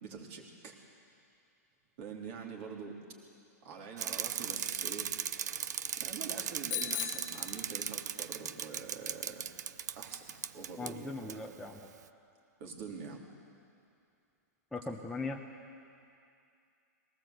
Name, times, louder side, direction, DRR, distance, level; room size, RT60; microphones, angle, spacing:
voice 1, 0.0-0.8 2.0-3.0 3.6-5.1 6.0-9.5 9.9-11.3 12.6-13.2, right 5 dB, 45° right, 0 dB, 3.4 m, -45 dB
Bicycle, 4.0-10.9 11.3-11.4, right 9 dB, 80° right, 0.7 m, -38 dB
Bicycle bell, 6.7-8.2, left 12 dB, 35° left, 1.5 m, -39 dB
voice 2, 10.8-11.9 14.7-15.4, left 3 dB, 5° left, -1 dB, 0.9 m, -39 dB
21.0 x 18.0 x 8.1 m, 2.5 s
hypercardioid pair, 150°, 9 cm